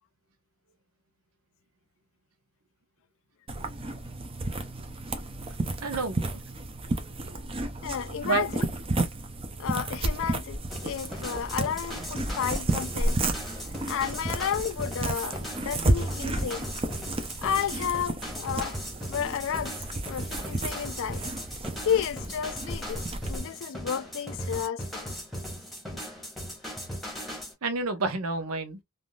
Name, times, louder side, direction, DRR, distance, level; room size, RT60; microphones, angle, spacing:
sound 1, 3.5-23.4, right 2 dB, 25° right, 0.6 m, -32 dB
voice 1, 5.8-6.4 8.2-8.5 27.6-28.8, right 4 dB, 80° right, 0.9 m, -29 dB
voice 2, 7.8-8.7 9.6-13.2 13.8-16.7 17.4-18.8 19.1-19.8 20.1-21.2 21.8-25.1, left 8 dB, 65° left, 0.4 m, -32 dB
sound 2, 10.7-27.5, equal, ahead, 1.1 m, -38 dB
3.5 x 2.6 x 2.3 m
head